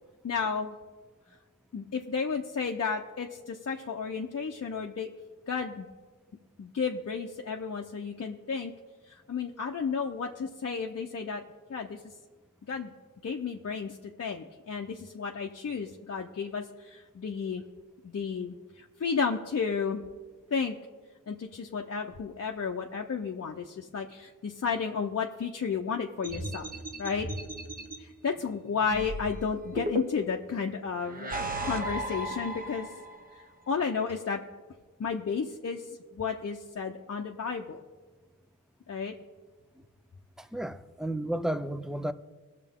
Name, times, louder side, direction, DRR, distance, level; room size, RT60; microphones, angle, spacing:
voice 1, 0.2-0.7 1.7-5.1 5.5-5.9 6.6-8.7 9.1-11.4 11.7-12.1 12.7-12.9 13.2-17.6 18.0-20.0 20.5-20.8 21.3-26.7 27.0-27.3 28.0-33.0 33.4-34.4 35.0-37.8 38.9-39.1, left 5 dB, 50° left, 0.7 m, -32 dB
sound 1, 26.2-28.0 28.9-30.4 31.0-33.2, right 1 dB, 25° right, 1.1 m, -35 dB
voice 2, 40.4-42.1, right 1 dB, ahead, 0.4 m, -32 dB
19.5 x 6.7 x 3.6 m
wide cardioid pair, 90°, 33 cm